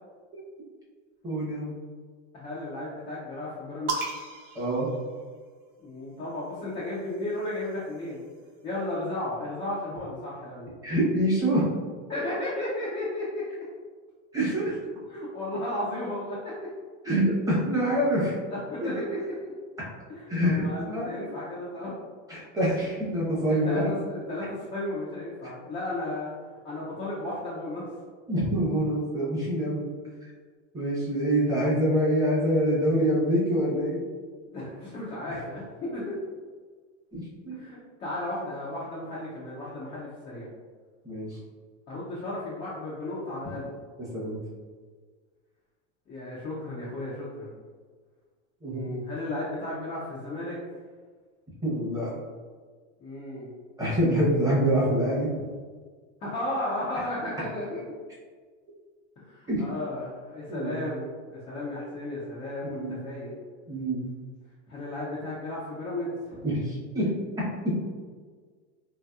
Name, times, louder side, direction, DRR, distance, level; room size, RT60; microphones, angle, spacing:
voice 1, 1.2-1.7 4.5-4.9 10.8-11.6 14.3-14.8 17.0-18.4 18.8-19.1 20.3-21.3 22.3-23.9 28.3-29.9 30.7-34.0 37.1-37.6 41.0-41.4 44.1-44.4 48.6-48.9 51.6-52.1 53.8-55.3 59.5-59.6 60.5-60.8 62.7-63.0 63.7-64.1 66.4-67.1 67.6-67.8, equal, 10° right, -7 dB, 0.8 m, -26 dB
voice 2, 2.3-4.0 5.8-8.3 8.6-10.7 12.1-13.4 15.1-16.7 18.5-19.5 20.1-21.9 23.6-26.3 26.6-27.9 34.5-36.2 37.5-40.5 41.9-43.7 46.1-47.5 48.7-50.6 53.0-53.5 56.2-57.8 59.2-63.3 64.7-66.4, left 1 dB, 15° left, -7 dB, 0.3 m, -34 dB
sound 1, 3.9-5.7 6.8-8.4, right 3 dB, 80° right, 0.7 m, -37 dB
3.0 x 2.8 x 2.3 m, 1.5 s
supercardioid pair, 140°, 37 cm